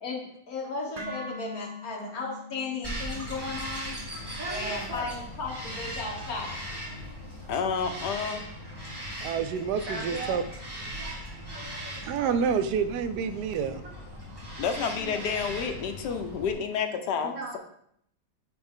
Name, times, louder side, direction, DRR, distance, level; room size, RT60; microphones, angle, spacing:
voice 1, 0.0-4.0 4.5-6.8, left 3 dB, 60° left, -1 dB, 1.8 m, -35 dB
sound 1, 1.0-9.1, left 2 dB, 40° right, 0.5 m, -46 dB
Bird vocalization bird call bird song, 2.8-16.5, equal, 15° right, 1.6 m, -39 dB
voice 2, 4.4-5.1 6.8-7.1 9.9-10.4 10.9-12.4 13.6-13.9 15.0-15.3 17.2-17.6, right 2 dB, 55° right, -5 dB, 1.6 m, -40 dB
voice 3, 7.5-8.4 14.6-17.6, left 6 dB, 75° left, 6 dB, 1.3 m, -30 dB
voice 4, 9.2-10.4 12.1-13.8, right 6 dB, 75° right, 10 dB, 1.1 m, -28 dB
8.8 x 3.4 x 3.6 m, 0.69 s
omnidirectional pair, 1.8 m